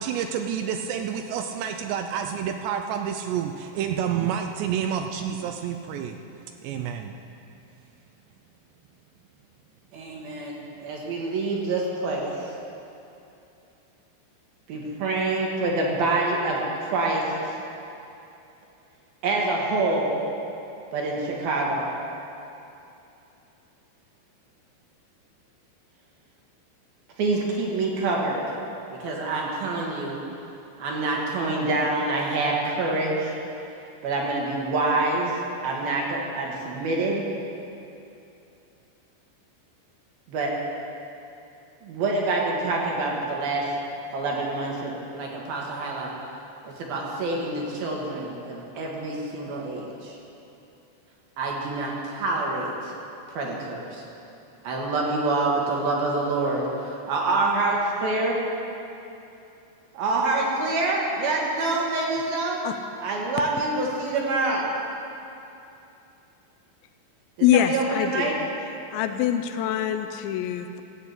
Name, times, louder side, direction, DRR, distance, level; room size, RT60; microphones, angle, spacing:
voice 1, 0.0-6.2 6.6-7.1, right 8 dB, 80° right, 6 dB, 2.5 m, -29 dB
voice 2, 9.9-12.4 14.7-17.3 19.2-20.1 20.9-21.9 27.2-28.5 29.0-30.2 30.8-33.4 34.0-37.2 40.3-40.5 41.8-43.7 44.1-46.1 46.6-50.2 51.4-52.9 53.3-54.0 54.6-58.4 59.9-62.6 63.0-64.7 67.5-68.3, right 2 dB, 65° right, -2 dB, 3.0 m, -26 dB
voice 3, 67.4-68.5 68.9-70.8, left 10 dB, 85° left, 7 dB, 2.8 m, -24 dB
15.0 x 8.2 x 8.2 m, 2.8 s
omnidirectional pair, 5.4 m